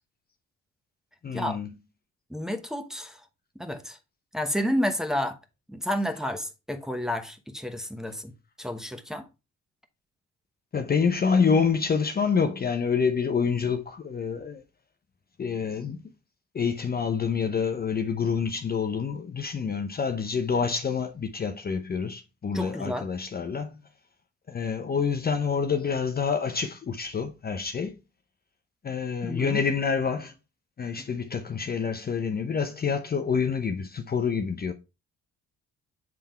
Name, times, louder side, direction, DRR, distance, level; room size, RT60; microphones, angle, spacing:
voice 1, 1.2-1.7 10.7-14.6 15.4-16.0 16.5-23.8 24.5-27.9 28.8-30.3 30.8-34.7, left 6 dB, 30° left, 0.6 m, -27 dB
voice 2, 2.3-3.2 3.6-4.0 4.3-5.4 5.7-8.3 8.6-9.2 22.5-23.1 29.2-29.6, equal, ahead, 1.0 m, -30 dB
7.7 x 3.6 x 4.3 m
cardioid pair, 90°, 30 cm